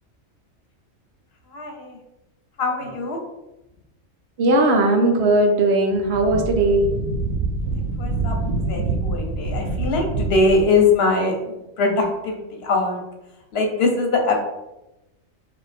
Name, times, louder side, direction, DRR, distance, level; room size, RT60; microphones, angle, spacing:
voice 1, 1.5-2.0 2.6-3.2 8.0-13.0 13.5-14.4, left 3 dB, 55° left, 2 dB, 0.9 m, -22 dB
voice 2, 4.4-6.9, right 2 dB, 60° right, 3 dB, 0.8 m, -18 dB
Wind, 5.9-10.8, right 3 dB, 85° right, 1.1 m, -26 dB
4.7 x 2.4 x 3.5 m, 0.96 s
omnidirectional pair, 1.4 m